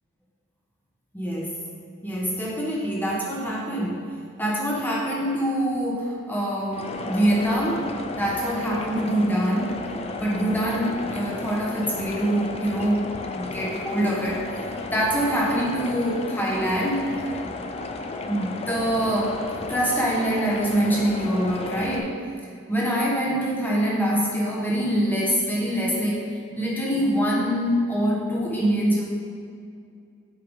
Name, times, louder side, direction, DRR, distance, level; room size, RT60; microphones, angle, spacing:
voice 1, 1.1-1.6 2.0-4.0 4.4-7.8 8.2-9.8 10.1-17.7 18.2-22.1 22.7-26.3 26.6-29.0, equal, 10° left, -4 dB, 1.1 m, -25 dB
sound 1, 6.7-22.0, left 3 dB, 30° left, 0.4 m, -34 dB
8.3 x 5.8 x 3.5 m, 2.3 s
head